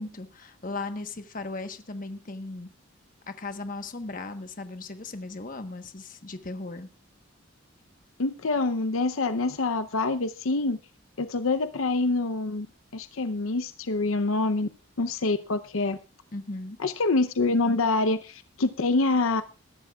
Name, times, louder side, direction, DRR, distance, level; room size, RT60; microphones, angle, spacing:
voice 1, 0.0-2.7 3.4-6.9 16.3-16.8, left 2 dB, 40° left, 8 dB, 1.2 m, -37 dB
voice 2, 8.2-10.8 11.2-12.7 12.9-14.7 15.0-16.0 16.8-19.4, left 3 dB, 85° left, 9 dB, 0.7 m, -26 dB
21.0 x 11.5 x 2.4 m, 0.32 s
head